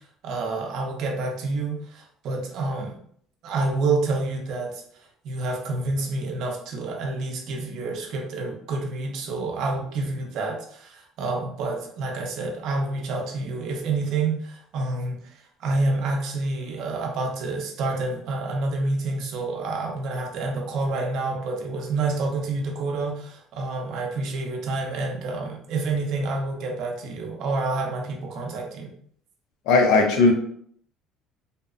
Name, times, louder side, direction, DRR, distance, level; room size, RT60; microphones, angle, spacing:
voice 1, 0.2-2.9 3.4-4.8 5.2-15.2 15.6-28.9, right 3 dB, 60° right, 2 dB, 0.5 m, -28 dB
voice 2, 29.7-30.3, left 3 dB, 90° left, 3 dB, 0.5 m, -17 dB
2.8 x 2.1 x 2.4 m, 0.63 s
cardioid pair, 155°, 0 cm